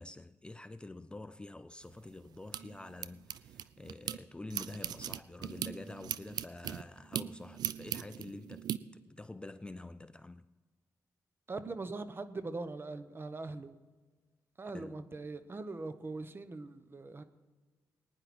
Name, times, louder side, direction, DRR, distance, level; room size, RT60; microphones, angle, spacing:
voice 1, 0.0-8.7 8.9-10.4 14.7-15.0, left 2 dB, 15° left, 0.4 m, -47 dB
sound 1, 1.8-4.2 4.5-8.8, right 10 dB, 80° right, 0.5 m, -39 dB
voice 2, 11.5-13.7 14.6-17.2, right 3 dB, 35° right, 1.0 m, -41 dB
20.0 x 9.9 x 4.3 m
cardioid pair, 80°, 7 cm